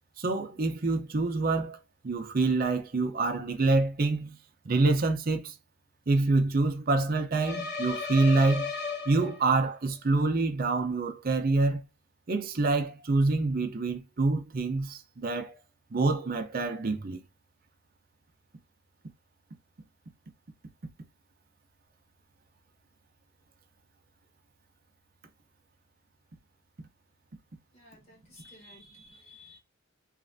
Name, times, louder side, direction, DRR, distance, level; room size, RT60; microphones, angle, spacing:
voice 1, 0.2-1.8 2.0-4.4 4.6-5.6 6.1-8.7 9.1-11.8 12.3-15.6 15.9-17.2, right 3 dB, 45° right, 0.6 m, -26 dB
sound 1, 7.4-9.7, left 4 dB, 55° left, 0.9 m, -35 dB
voice 2, 27.7-29.6, left 1 dB, 30° left, 1.5 m, -54 dB
3.2 x 2.5 x 2.6 m
head